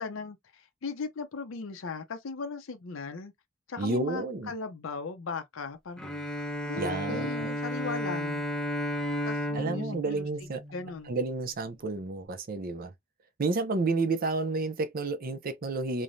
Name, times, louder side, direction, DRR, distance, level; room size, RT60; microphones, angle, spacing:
voice 1, 0.0-3.3 3.7-6.1 6.6-8.4 9.2-10.3 10.7-11.1, left 4 dB, 75° left, 0.6 m, -38 dB
voice 2, 3.8-4.5 6.7-7.5 9.5-10.6 11.1-12.9 13.4-16.0, right 3 dB, 45° right, 0.5 m, -31 dB
Bowed string instrument, 6.0-11.4, left 1 dB, 5° left, 0.6 m, -33 dB
3.2 x 2.1 x 2.6 m
head